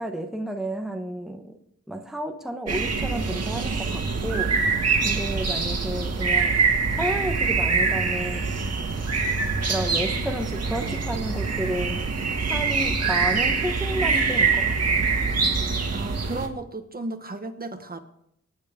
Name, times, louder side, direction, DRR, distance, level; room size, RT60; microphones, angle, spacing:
voice 1, 0.0-1.6 1.9-4.6 5.0-6.6 6.9-8.5 9.6-12.0 12.5-15.1, right 1 dB, ahead, 1.0 m, -31 dB
sound 1, 2.7-16.5, right 4 dB, 60° right, 2.0 m, -24 dB
voice 2, 15.9-18.0, right 2 dB, 30° right, 1.3 m, -34 dB
25.5 x 9.6 x 3.7 m
wide cardioid pair, 120°, 29 cm